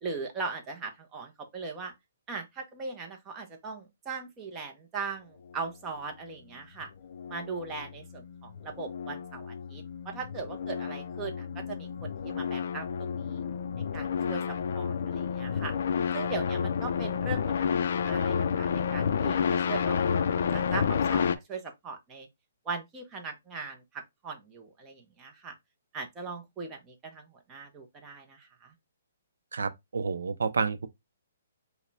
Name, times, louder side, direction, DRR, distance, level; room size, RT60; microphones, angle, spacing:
voice 1, 0.0-1.9 2.3-6.9 7.3-13.4 13.9-15.7 16.1-17.4 17.7-22.3 22.6-25.5 25.9-28.7, right 4 dB, 15° right, 0.6 m, -39 dB
sound 1, 6.8-21.4, left 7 dB, 50° left, 0.3 m, -30 dB
voice 2, 29.5-30.9, right 5 dB, 85° right, 0.5 m, -30 dB
4.8 x 2.1 x 3.2 m
hypercardioid pair, 175°, 0 cm